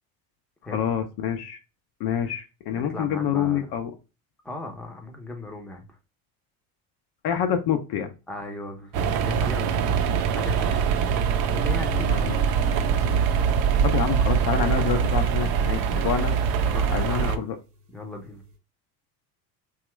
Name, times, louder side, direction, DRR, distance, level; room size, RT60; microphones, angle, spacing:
voice 1, 0.7-1.6 2.0-3.9 7.2-8.1 12.1-12.4 13.8-16.3 16.9-17.6, left 8 dB, 50° left, 7 dB, 0.6 m, -27 dB
voice 2, 2.7-3.7 4.4-5.9 8.3-10.9 11.5-12.2 16.6-17.5 17.9-18.4, left 2 dB, ahead, 2 dB, 0.7 m, -37 dB
sound 1, 8.9-17.4, right 7 dB, 50° right, 0.5 m, -23 dB
sound 2, 11.5-18.5, left 5 dB, 35° right, 1.0 m, -44 dB
2.9 x 2.4 x 3.0 m, 0.29 s
hypercardioid pair, 70°, 49 cm